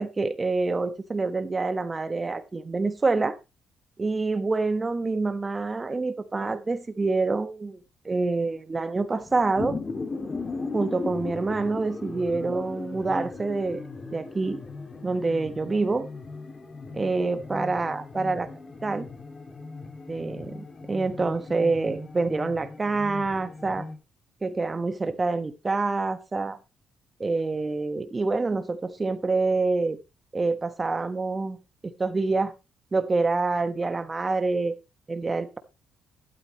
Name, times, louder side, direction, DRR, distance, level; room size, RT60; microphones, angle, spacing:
voice 1, 0.0-3.4 4.0-7.8 8.0-9.8 10.7-13.8 14.1-14.6 15.0-16.1 16.9-18.5 18.8-19.1 20.1-23.9 24.4-26.6 27.2-30.0 30.3-31.6 31.8-32.5 32.9-34.8 35.1-35.6, right 3 dB, 25° right, 1.2 m, -26 dB
sound 1, 9.2-24.0, left 3 dB, 35° left, 2.3 m, -38 dB
12.0 x 11.5 x 3.0 m
cardioid pair, 90°, 0 cm